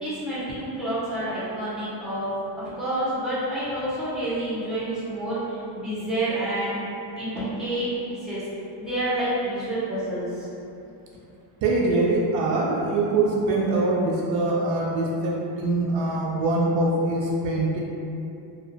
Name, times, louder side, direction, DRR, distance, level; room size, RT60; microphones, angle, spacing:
voice 1, 0.0-6.8 7.2-8.4 8.8-10.5, right 1 dB, ahead, -12 dB, 1.0 m, -28 dB
voice 2, 11.6-17.8, right 2 dB, 70° right, -3 dB, 0.5 m, -23 dB
2.7 x 2.0 x 2.6 m, 2.7 s
cardioid pair, 100°, 47 cm